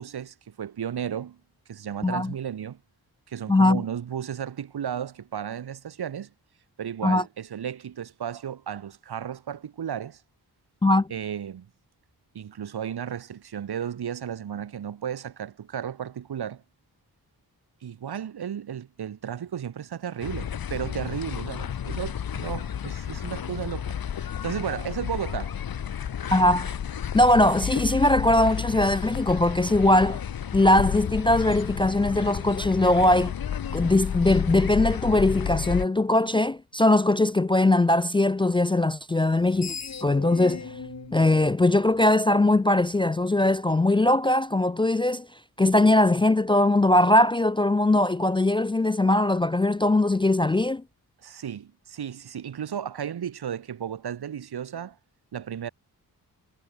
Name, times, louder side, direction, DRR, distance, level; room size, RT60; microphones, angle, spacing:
voice 1, 0.0-1.4 1.7-2.8 3.3-6.3 6.8-10.2 11.1-11.7 12.3-16.6 17.8-25.6 40.5-41.2 51.2-55.0 55.3-55.7, right 9 dB, 85° right, 2.8 m, -34 dB
voice 2, 2.0-2.3 3.5-3.8 7.0-7.2 10.8-11.1 26.3-26.8 27.1-30.2 30.5-33.3 33.7-39.8 40.0-40.7 41.1-45.3 45.6-50.8, left 1 dB, 15° left, 0.3 m, -21 dB
sound 1, 20.2-35.9, left 9 dB, 65° left, 1.4 m, -31 dB
Screech, 39.3-42.5, left 5 dB, 45° left, 2.6 m, -39 dB
wide cardioid pair, 120°, 38 cm